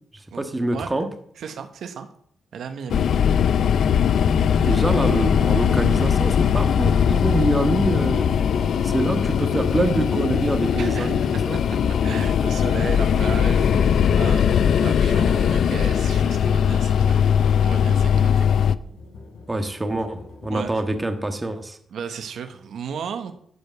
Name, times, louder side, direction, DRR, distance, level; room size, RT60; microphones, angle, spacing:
voice 1, 0.4-1.1 4.6-8.3 8.8-11.2 11.5-11.6 19.5-21.8, right 2 dB, 15° right, 7 dB, 1.5 m, -25 dB
voice 2, 1.4-2.1 2.5-3.1 8.8-9.0 10.7-11.6 11.9-17.3 17.6-18.5 19.6-19.7 20.5-20.8 21.9-23.3, right 7 dB, 80° right, 7 dB, 1.2 m, -35 dB
sound 1, 2.9-18.7, left 8 dB, 75° left, 0.5 m, -20 dB
sound 2, 10.3-18.0 18.3-21.4, left 3 dB, 90° left, 4.1 m, -44 dB
12.5 x 5.2 x 8.2 m, 0.65 s
cardioid pair, 100°, 0 cm